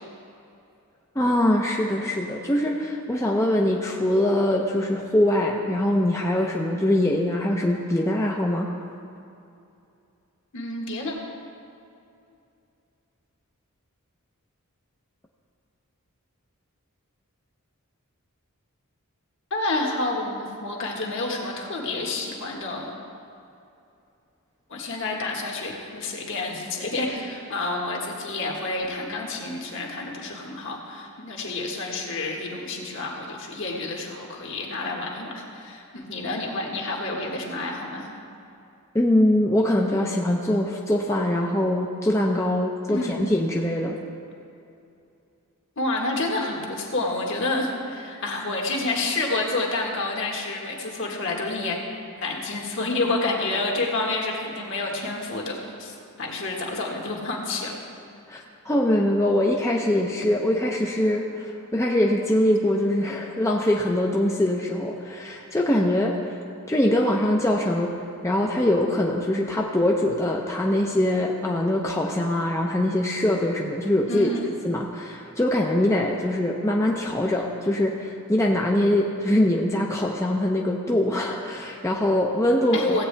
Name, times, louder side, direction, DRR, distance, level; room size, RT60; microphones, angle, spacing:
voice 1, 1.2-8.7 38.9-44.0 58.3-66.2 66.7-74.3 74.6-83.0, left 1 dB, 15° left, -1 dB, 0.5 m, -23 dB
voice 2, 10.5-11.1 19.5-22.9 24.7-38.1 42.9-43.2 45.8-51.8 52.2-57.7 74.1-74.5 82.7-83.0, left 2 dB, 55° left, 0 dB, 1.6 m, -29 dB
16.0 x 8.4 x 3.4 m, 2.6 s
head